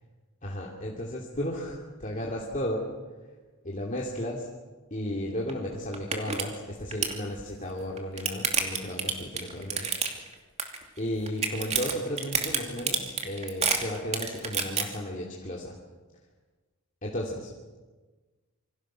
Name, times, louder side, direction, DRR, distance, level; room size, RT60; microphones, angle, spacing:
voice 1, 0.4-2.9 3.6-4.5 4.9-9.9 10.2-10.3 11.0-15.7 17.0-17.5, equal, 35° left, -2 dB, 2.8 m, -34 dB
sound 1, 5.5-5.6 5.9-6.4 6.7-7.2 7.8-10.3 10.6-11.0 11.3-14.8, right 6 dB, 30° right, 2.7 m, -28 dB
27.5 x 24.5 x 6.3 m, 1.3 s
head